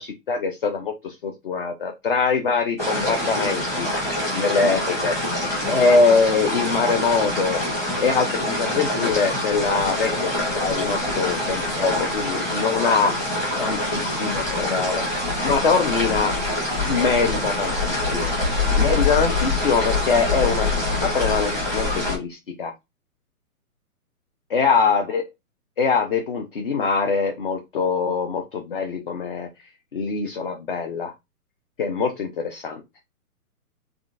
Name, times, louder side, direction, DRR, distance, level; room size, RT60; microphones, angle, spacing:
voice 1, 0.0-3.9 4.3-5.2 5.7-7.6 8.0-13.1 13.6-15.0 15.4-16.3 16.9-22.7 24.5-25.2 25.8-29.5 29.9-31.1 31.8-32.8, left 4 dB, 40° left, 4 dB, 0.4 m, -23 dB
sound 1, 2.8-22.2, left 2 dB, 5° left, 0.8 m, -25 dB
3.6 x 2.3 x 2.4 m, 0.22 s
hypercardioid pair, 140°, 45 cm